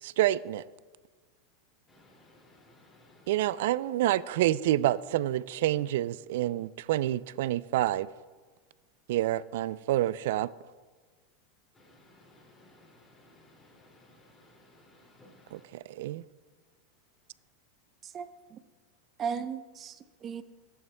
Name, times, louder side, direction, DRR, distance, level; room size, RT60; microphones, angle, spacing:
voice 1, 0.0-0.6 3.3-8.1 9.1-10.5 15.5-16.2, right 14 dB, 70° right, 18 dB, 0.3 m, -28 dB
voice 2, 1.9-3.4 11.7-15.7, left 1 dB, 15° left, -2 dB, 2.4 m, -59 dB
voice 3, 18.0-18.6 19.2-20.4, right 6 dB, 30° right, 12 dB, 0.6 m, -37 dB
15.5 x 10.5 x 2.2 m, 1.4 s
supercardioid pair, 125°, 0 cm